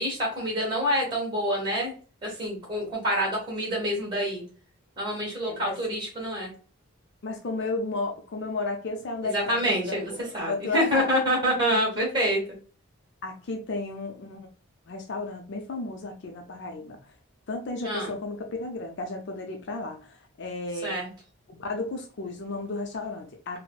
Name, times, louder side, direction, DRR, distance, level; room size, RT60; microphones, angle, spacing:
voice 1, 0.0-1.9 2.2-4.4 5.0-6.5 9.2-12.4 17.8-18.1 20.8-21.1, equal, 20° right, 1.3 m, -27 dB
voice 2, 5.5-5.8 7.2-11.1 11.7-11.8 13.2-14.5 14.9-17.0 17.5-21.0 21.5-23.6, left 3 dB, 55° left, 0.4 m, -33 dB
4.1 x 2.0 x 2.2 m
head